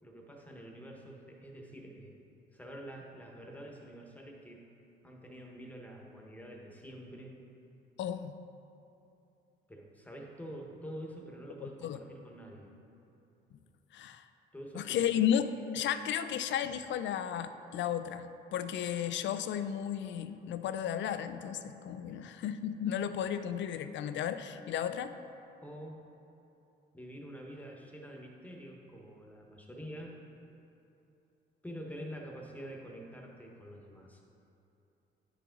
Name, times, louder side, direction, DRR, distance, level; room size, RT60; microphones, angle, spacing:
voice 1, 0.0-2.2 2.5-4.7 5.0-7.4 9.7-12.7 14.5-15.1 22.1-22.2 25.6-26.0 26.9-30.2 31.6-34.2, equal, 10° left, 0 dB, 1.1 m, -47 dB
voice 2, 8.0-8.4 11.6-12.0 13.9-14.3 14.8-15.4 15.7-25.1, left 9 dB, 65° left, 11 dB, 0.4 m, -34 dB
9.4 x 4.8 x 3.9 m, 2.8 s
cardioid pair, 90°, 20 cm